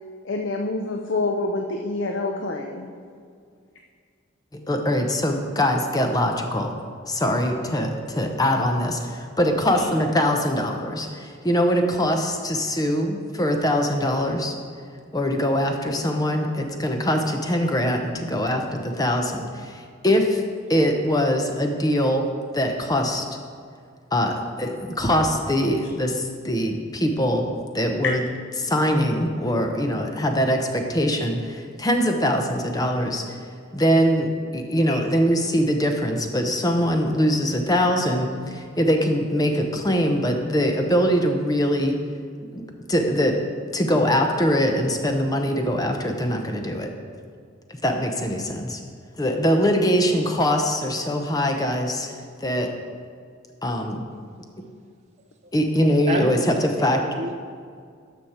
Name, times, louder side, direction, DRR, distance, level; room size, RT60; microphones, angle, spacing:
voice 1, 0.2-2.9 9.8-9.9 34.9-35.0, left 2 dB, 65° left, 2 dB, 0.7 m, -27 dB
voice 2, 4.5-6.7 7.1-14.5 15.1-20.4 20.7-22.3 22.5-23.3 24.1-28.2 28.6-33.4 33.7-42.0 42.5-42.6 42.9-43.4 43.7-46.9 47.8-48.8 49.2-52.1 52.4-52.7 53.6-54.0 55.5-57.0, equal, 20° left, 4 dB, 0.7 m, -22 dB
voice 3, 56.1-57.4, right 1 dB, 35° right, 2 dB, 0.5 m, -29 dB
12.0 x 6.3 x 4.3 m, 2.1 s
head